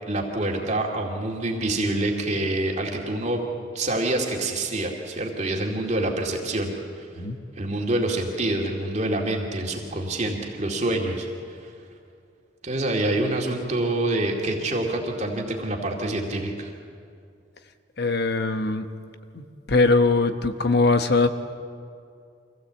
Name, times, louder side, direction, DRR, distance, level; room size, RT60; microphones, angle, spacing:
voice 1, 0.1-3.4 3.7-7.1 7.6-11.7 12.6-16.7, right 1 dB, 35° right, 0 dB, 2.3 m, -26 dB
voice 2, 18.0-18.8 19.3-21.3, left 3 dB, 55° left, 9 dB, 1.1 m, -21 dB
25.0 x 16.0 x 8.1 m, 2.4 s
head